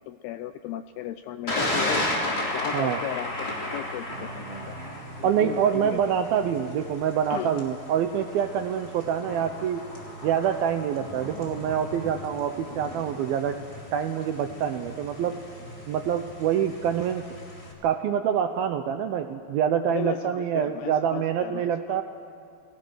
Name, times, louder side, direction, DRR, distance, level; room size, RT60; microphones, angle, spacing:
voice 1, 0.0-2.1 2.5-4.8 5.2-6.0 7.3-7.6 19.9-22.0, left 12 dB, 80° left, 10 dB, 2.3 m, -35 dB
Thunder, 1.5-17.7, left 1 dB, 20° left, 3.7 m, -35 dB
sound 1, 4.1-8.8, right 5 dB, 50° right, 2.1 m, -47 dB
voice 2, 5.2-9.9 10.2-13.6 13.9-15.4 15.9-17.2 17.8-22.0, right 8 dB, 75° right, 7 dB, 2.2 m, -26 dB
29.5 x 21.0 x 6.3 m, 2.5 s
omnidirectional pair, 5.2 m